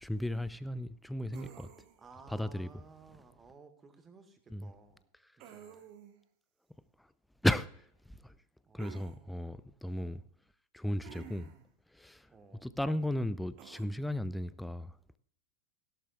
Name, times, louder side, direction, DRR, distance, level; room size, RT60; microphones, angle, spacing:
voice 1, 0.0-1.7 2.3-2.7 4.5-4.7 7.4-7.9 8.2-8.3 8.7-10.2 10.7-11.5 11.9-12.3 12.6-15.2, left 1 dB, 5° left, 0.5 m, -35 dB
sound 1, 1.3-2.1 5.4-6.2 8.8-9.2 11.0-11.7 13.6-13.8, right 10 dB, 40° right, 1.3 m, -52 dB
voice 2, 2.0-5.1 5.4-5.8 8.7-9.7 10.0-10.2 12.3-12.7, right 5 dB, 15° right, 1.7 m, -57 dB
16.5 x 11.5 x 2.4 m
figure-of-eight pair, 90°, 0 cm